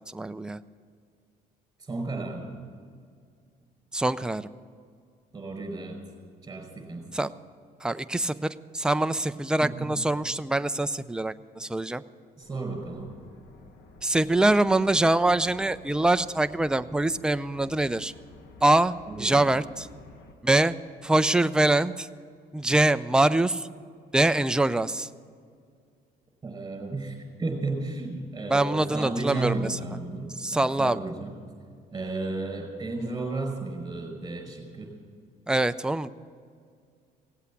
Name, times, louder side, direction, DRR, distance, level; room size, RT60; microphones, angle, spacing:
voice 1, 0.1-0.6 3.9-4.5 7.1-7.3 7.8-8.5 8.7-12.0 14.0-18.1 18.6-19.9 20.4-20.8 21.0-22.1 22.5-23.7 24.1-25.1 28.5-29.8 30.4-31.0 35.5-36.1, right 2 dB, 5° right, 11 dB, 0.4 m, -24 dB
voice 2, 1.8-2.6 5.3-6.0 6.4-7.0 9.6-9.9 12.4-13.1 19.1-19.6 26.4-31.3 31.9-34.9, right 3 dB, 20° right, 2 dB, 5.1 m, -33 dB
sound 1, 12.4-20.3, left 2 dB, 75° left, 1.6 m, -52 dB
17.5 x 8.2 x 8.4 m, 2.1 s
cardioid pair, 110°, 17 cm